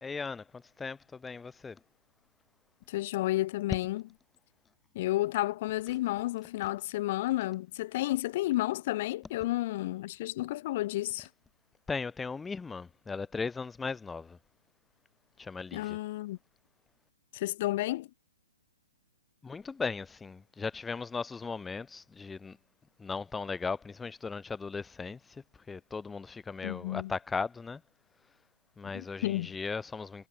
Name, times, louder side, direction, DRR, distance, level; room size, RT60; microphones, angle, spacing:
voice 1, 0.0-1.8 11.9-14.4 15.4-16.0 19.4-22.6 23.0-27.8 28.8-30.3, left 4 dB, 10° left, 1.0 m, -37 dB
voice 2, 2.9-4.0 4.9-11.3 15.7-16.4 17.3-18.1 26.6-27.1 28.9-29.5, left 16 dB, 40° left, 0.8 m, -31 dB
figure-of-eight pair, 120°, 0 cm